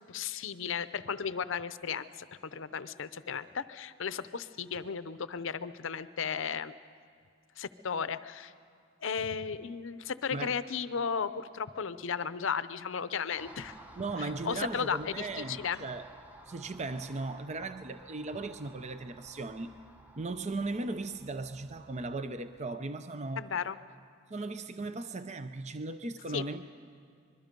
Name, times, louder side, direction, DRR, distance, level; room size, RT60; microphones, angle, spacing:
voice 1, 0.1-2.3 2.5-6.7 7.6-8.5 9.0-13.8 14.2-15.8 23.4-23.8 26.3-26.4, left 6 dB, 70° left, 13 dB, 0.7 m, -35 dB
Car passing by, 13.4-22.7, right 1 dB, 10° right, 0.9 m, -54 dB
voice 2, 14.0-16.0 16.5-19.8 20.2-23.5 24.3-26.6, right 3 dB, 35° right, 10 dB, 0.6 m, -37 dB
25.0 x 22.0 x 5.3 m, 2.2 s
head